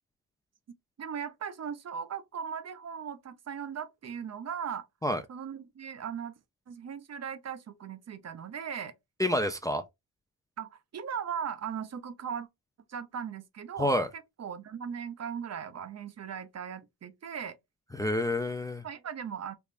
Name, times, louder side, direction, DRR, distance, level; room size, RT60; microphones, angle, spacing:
voice 1, 1.0-4.9 5.3-6.3 6.7-8.9 10.6-12.5 12.9-13.9 14.4-17.6 18.8-19.5, right 7 dB, 45° right, 0.5 m, -38 dB
voice 2, 9.2-9.8 13.8-14.1 17.9-18.8, left 1 dB, 10° left, 0.4 m, -28 dB
3.4 x 3.1 x 2.4 m
cardioid pair, 95°, 36 cm